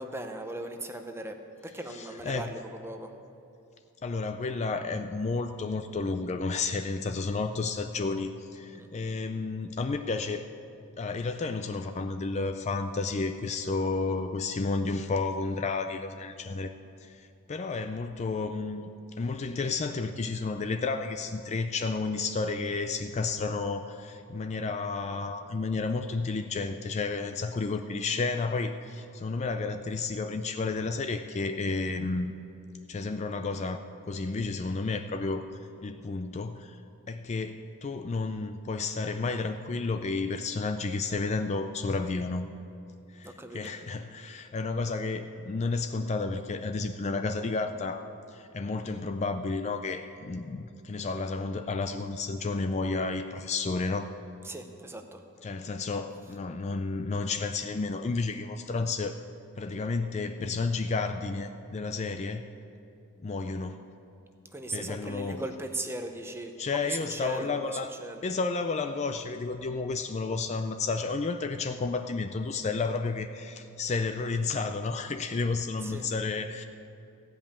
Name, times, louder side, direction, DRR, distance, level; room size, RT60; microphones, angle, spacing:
voice 1, 0.0-1.4 1.6-3.1 8.7-8.9 43.2-43.7 54.4-55.2 64.5-67.6 68.0-68.2 75.8-76.1, right 1 dB, 10° right, 6 dB, 0.7 m, -38 dB
voice 2, 1.9-2.5 4.0-10.5 11.0-16.7 17.0-18.8 19.2-32.3 32.9-35.4 35.8-36.8 37.1-42.5 43.1-48.0 48.3-54.1 55.4-59.2 59.6-62.4 63.2-63.8 64.7-65.5 66.6-67.9 68.2-76.6, left 3 dB, 30° left, 8 dB, 0.4 m, -31 dB
15.5 x 5.4 x 8.6 m, 2.7 s
head